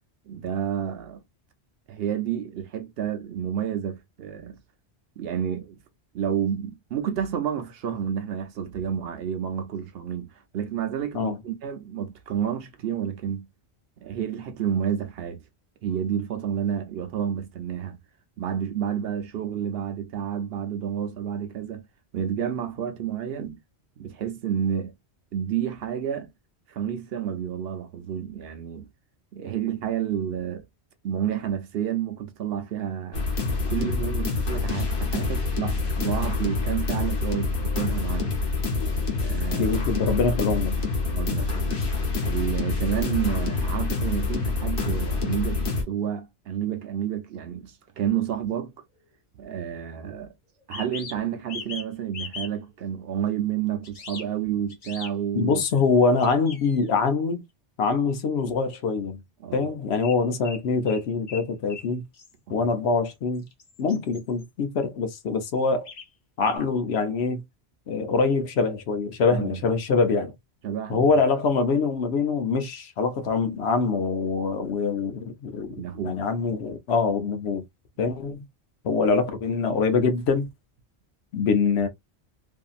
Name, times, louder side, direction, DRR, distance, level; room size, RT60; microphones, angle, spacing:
voice 1, 0.3-1.2 1.9-4.6 5.2-5.8 6.1-13.5 14.0-15.4 15.8-18.0 18.4-21.8 22.1-23.6 24.0-24.9 25.3-26.3 26.7-28.9 29.3-30.6 31.0-33.3 33.7-38.4 39.2-39.8 41.0-41.9 42.2-48.7 49.4-50.3 50.7-55.6 59.4-59.7 62.5-62.7 69.3-69.6 70.6-71.0 75.7-76.2, right 9 dB, 65° right, 0.8 m, -30 dB
sound 1, 33.1-45.8, left 3 dB, 90° left, 1.2 m, -26 dB
voice 2, 39.6-40.7 55.4-57.4 57.8-59.2 59.5-62.0 62.5-63.4 63.8-65.9 66.4-67.4 67.9-70.3 70.9-75.8 76.0-77.6 78.0-78.4 78.8-80.5 81.3-81.9, left 4 dB, 75° left, 0.9 m, -24 dB
sound 2, 48.4-48.5 50.6-51.9 52.1-52.5 53.8-54.3 54.7-55.1 56.2-56.9 60.0-60.2 60.4-61.4 61.7-61.9 62.1-62.3 63.3-64.4 65.8-66.1 66.4-66.6, left 5 dB, 45° left, 0.8 m, -39 dB
2.7 x 2.6 x 2.3 m
omnidirectional pair, 1.1 m